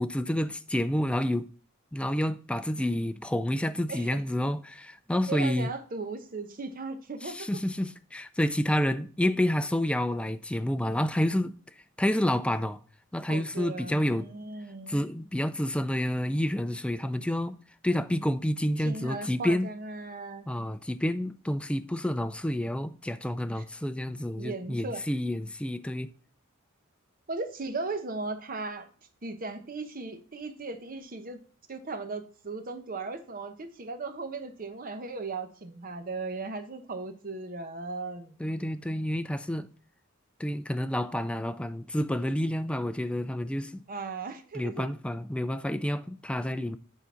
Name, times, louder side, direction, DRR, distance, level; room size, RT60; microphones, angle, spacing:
voice 1, 0.0-1.5 1.9-5.7 7.2-11.5 12.0-12.8 13.1-14.3 14.9-17.6 17.8-19.7 20.5-26.1 38.4-39.7 40.4-43.8 44.5-46.8, left 1 dB, 5° left, 0.3 m, -29 dB
voice 2, 3.9-4.2 5.3-7.5 13.3-15.1 18.8-20.5 23.5-23.6 24.4-25.0 27.3-28.9 29.2-31.4 31.7-38.4 43.9-44.9, right 3 dB, 45° right, 0.9 m, -37 dB
8.5 x 3.9 x 5.6 m
head